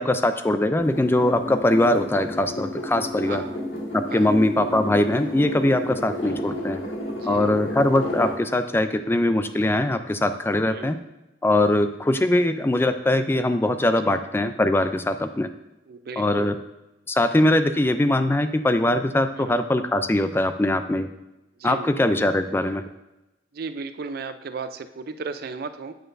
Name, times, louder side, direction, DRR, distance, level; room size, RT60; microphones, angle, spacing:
voice 1, 0.0-3.4 3.9-6.8 7.3-11.0 11.4-15.5 16.2-16.6 17.1-21.1 21.6-22.8, left 1 dB, 10° left, 10 dB, 0.3 m, -22 dB
puodel daug, 0.8-8.4, left 1 dB, 90° left, 2.0 m, -32 dB
voice 2, 3.2-3.6 4.1-4.3 7.0-7.5 10.6-11.0 14.1-14.2 15.9-16.5 19.3-19.6 21.6-21.9 23.5-25.9, right 4 dB, 55° right, 10 dB, 0.4 m, -35 dB
8.8 x 6.6 x 2.6 m, 0.99 s
head